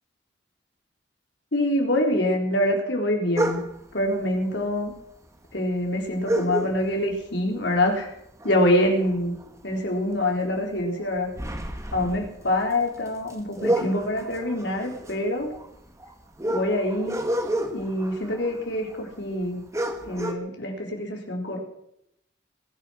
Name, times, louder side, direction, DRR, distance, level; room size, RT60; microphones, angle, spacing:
voice 1, 1.5-3.6 3.9-4.9 5.5-8.1 8.4-9.3 9.6-11.3 11.9-15.5 16.5-17.2 17.7-19.6 20.0-21.6, left 1 dB, 60° left, 1 dB, 4.3 m, -25 dB
sound 1, 3.3-3.9 4.9-5.0 5.3-5.4 6.2-7.2 7.6-7.8 8.2-9.8 10.1-10.3 10.8-19.1 19.4-19.5 19.7-20.3, right 1 dB, 15° right, 1.7 m, -30 dB
22.0 x 9.6 x 6.5 m, 0.75 s
head